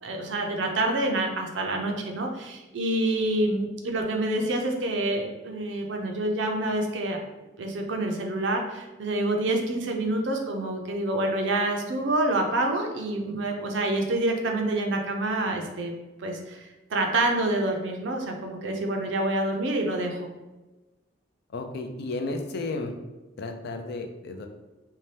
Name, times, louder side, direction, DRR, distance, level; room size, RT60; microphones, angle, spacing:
voice 1, 0.0-7.2 7.6-15.9 16.2-20.3, right 2 dB, 75° right, 2 dB, 0.5 m, -27 dB
voice 2, 21.5-22.9 23.4-24.5, left 2 dB, 60° left, 5 dB, 0.4 m, -33 dB
2.7 x 2.1 x 3.2 m, 1.1 s
head